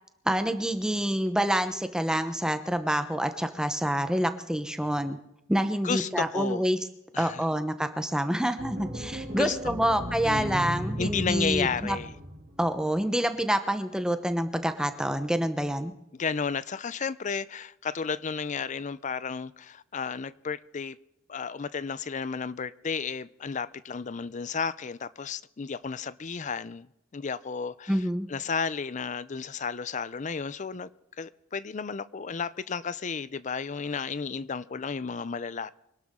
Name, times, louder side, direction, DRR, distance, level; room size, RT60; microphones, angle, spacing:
voice 1, 0.3-5.2 5.5-6.8 7.2-12.0 12.6-15.9 27.9-28.3, equal, 5° right, 0.9 m, -27 dB
voice 2, 5.8-6.6 7.1-7.4 9.4-9.9 10.2-10.7 11.0-12.1 16.1-21.0 21.3-26.9 27.1-28.0 28.3-30.9 31.2-35.7, left 5 dB, 40° left, 0.5 m, -33 dB
sound 1, 8.6-12.8, equal, 45° right, 3.7 m, -36 dB
25.0 x 12.0 x 3.7 m
head